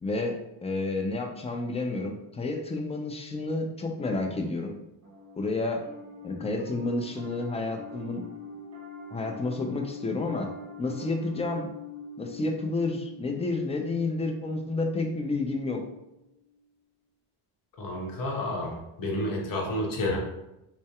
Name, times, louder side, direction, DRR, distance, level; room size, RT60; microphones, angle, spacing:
voice 1, 0.0-4.7 5.4-5.8 6.2-8.3 9.1-10.5 10.8-11.7 12.2-15.8, left 2 dB, 15° left, 3 dB, 0.4 m, -30 dB
Piano, 5.0-16.5, left 3 dB, 35° right, 0.8 m, -45 dB
voice 2, 17.8-20.2, left 1 dB, 50° left, -1 dB, 0.9 m, -30 dB
2.6 x 2.1 x 2.3 m, 0.89 s
supercardioid pair, 55°, 45 cm